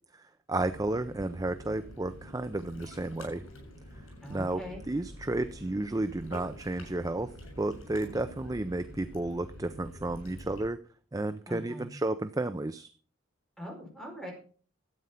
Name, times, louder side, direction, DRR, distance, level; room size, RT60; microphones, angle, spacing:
voice 1, 0.5-3.4 4.3-10.8 11.1-12.9, right 2 dB, 15° right, 10 dB, 0.4 m, -32 dB
Ocean, 0.6-10.7, equal, 90° left, 6.8 m, -47 dB
voice 2, 4.2-4.8 11.5-11.9 13.6-14.3, equal, ahead, -1 dB, 4.7 m, -41 dB
12.5 x 8.7 x 5.6 m, 0.43 s
head